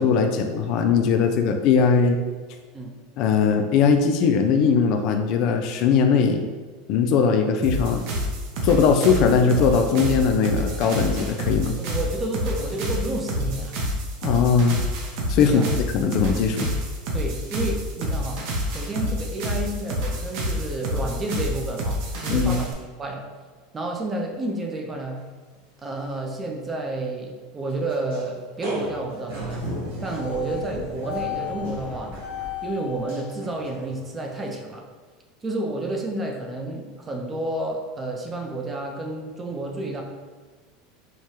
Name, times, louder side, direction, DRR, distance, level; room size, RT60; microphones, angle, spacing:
voice 1, 0.0-2.2 3.2-6.5 6.9-8.0 8.6-11.7 14.2-14.8 15.3-16.7 22.3-22.6, left 6 dB, 50° left, 5 dB, 0.3 m, -20 dB
sound 1, 7.6-22.7, equal, 60° right, 0.6 m, -28 dB
voice 2, 11.8-13.8 15.4-15.7 17.1-18.4 18.7-22.7 23.0-23.3 23.7-25.2 25.8-29.6 30.0-32.2 32.6-34.9 35.4-40.0, right 2 dB, 15° right, 1 dB, 0.5 m, -30 dB
sound 2, 25.3-25.6 25.9-26.0 26.4-26.5 27.9-28.3 28.6-34.7, left 2 dB, 85° right, 0.9 m, -34 dB
4.6 x 2.2 x 2.8 m, 1.4 s
supercardioid pair, 140°, 0 cm